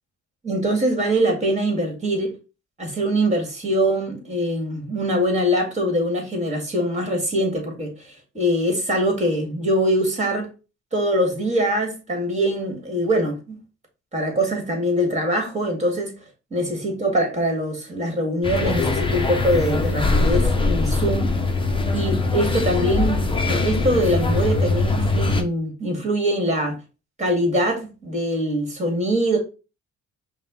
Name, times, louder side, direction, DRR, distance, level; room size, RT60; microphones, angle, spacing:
voice 1, 0.4-2.3 2.8-7.9 8.3-10.5 10.9-13.6 14.1-16.1 16.5-21.4 21.9-26.8 27.2-29.4, equal, 20° right, 2.2 m, -23 dB
sound 1, 18.4-25.4, left 3 dB, 15° left, 0.8 m, -22 dB
5.4 x 2.4 x 3.9 m
cardioid pair, 90°, 30 cm